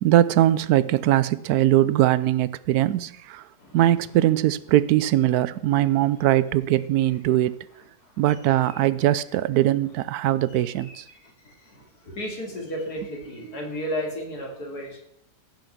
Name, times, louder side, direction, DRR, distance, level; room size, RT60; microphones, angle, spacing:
voice 1, 0.0-3.4 3.7-7.5 8.2-11.0, right 13 dB, 75° right, 17 dB, 1.1 m, -21 dB
voice 2, 8.0-9.4 10.5-15.0, equal, 75° left, 0 dB, 3.2 m, -35 dB
15.5 x 5.9 x 5.9 m, 0.77 s
omnidirectional pair, 1.7 m